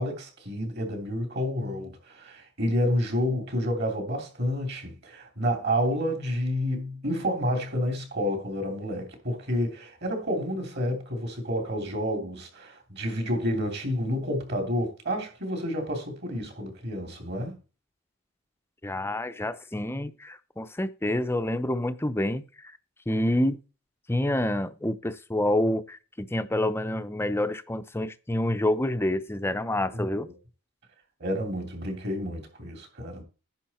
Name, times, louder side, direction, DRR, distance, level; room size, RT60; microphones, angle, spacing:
voice 1, 0.0-17.5 29.9-30.3 31.2-33.2, equal, 50° right, 3.0 m, -29 dB
voice 2, 18.8-22.8 23.1-23.6 24.1-30.3, left 1 dB, 10° left, 0.6 m, -28 dB
10.5 x 6.7 x 4.3 m
head